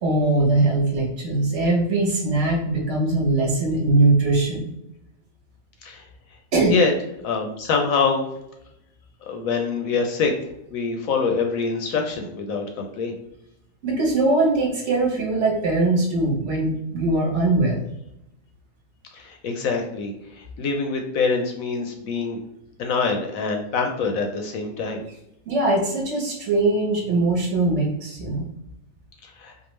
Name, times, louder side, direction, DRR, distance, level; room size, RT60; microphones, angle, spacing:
voice 1, 0.0-4.7 6.5-6.7 13.8-17.8 25.5-28.5, right 2 dB, 50° right, -2 dB, 1.2 m, -21 dB
voice 2, 7.2-8.2 9.2-10.3 10.7-13.2 19.1-22.4 22.8-25.0 29.2-29.5, left 4 dB, 70° left, 3 dB, 0.9 m, -25 dB
4.6 x 2.4 x 3.0 m, 0.83 s
omnidirectional pair, 1.8 m